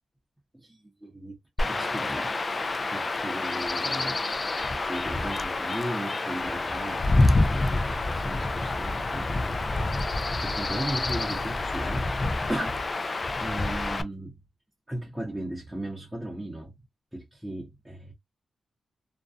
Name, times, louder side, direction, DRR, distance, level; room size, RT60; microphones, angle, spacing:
voice 1, 0.5-2.4 2.9-9.7 10.4-12.1 12.5-14.4 14.9-16.8 17.1-18.1, right 1 dB, 10° right, 0.7 m, -37 dB
Chirp tweet / Wind / Stream, 1.6-14.0, left 2 dB, 35° left, 0.3 m, -27 dB
2.5 x 2.2 x 2.3 m
cardioid pair, 95°, 0 cm